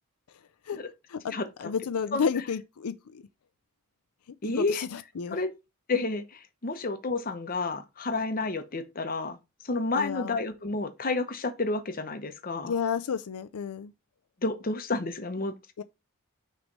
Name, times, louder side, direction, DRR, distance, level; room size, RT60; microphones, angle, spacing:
voice 1, 1.6-3.2 4.4-5.4 9.9-10.4 12.7-13.9 15.8-15.9, left 6 dB, 90° left, 0.5 m, -31 dB
voice 2, 4.4-4.8 5.3-5.5 5.9-9.4 9.6-12.7 14.4-15.5, left 3 dB, 40° left, 0.8 m, -30 dB
6.1 x 3.2 x 5.3 m
head